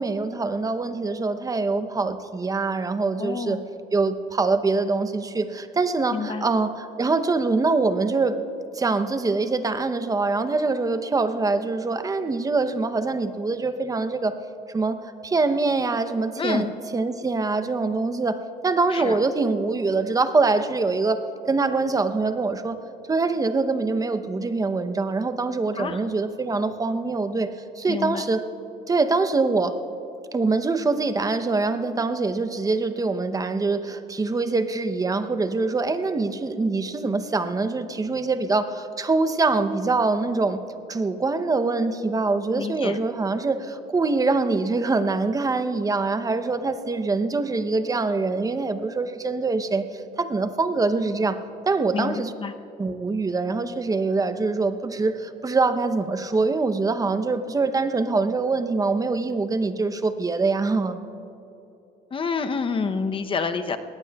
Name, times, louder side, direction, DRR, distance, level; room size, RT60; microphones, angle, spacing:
voice 1, 0.0-3.6 3.9-8.4 8.7-14.3 14.7-22.8 23.1-27.5 27.8-28.4 28.9-29.8 30.3-40.6 40.9-51.4 51.7-52.3 52.8-61.0, right 3 dB, 20° right, 10 dB, 0.7 m, -24 dB
voice 2, 3.2-3.6 6.1-6.4 16.4-16.7 18.9-19.2 25.8-26.0 27.9-28.3 42.6-43.0 51.9-52.5 62.1-63.8, left 5 dB, 30° left, 9 dB, 0.7 m, -28 dB
21.5 x 18.5 x 2.3 m, 2.9 s
cardioid pair, 110°, 17 cm